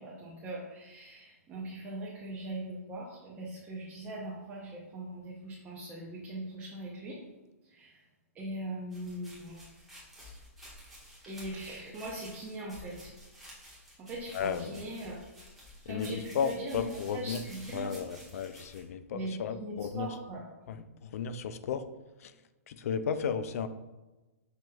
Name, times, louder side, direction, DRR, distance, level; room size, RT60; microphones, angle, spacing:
voice 1, 0.0-7.2 7.6-8.0 8.3-9.6 11.3-13.1 14.0-15.3 15.8-16.9 17.1-17.9 19.1-20.4, right 1 dB, 15° right, -5 dB, 0.6 m, -41 dB
sound 1, 8.9-18.8, equal, ahead, 1.2 m, -52 dB
voice 2, 14.3-14.9 15.9-17.4 17.7-20.2 20.7-21.8 22.2-22.3 22.7-23.7, left 7 dB, 65° left, 11 dB, 0.3 m, -34 dB
5.9 x 3.0 x 2.3 m, 1.1 s
hypercardioid pair, 155°, 9 cm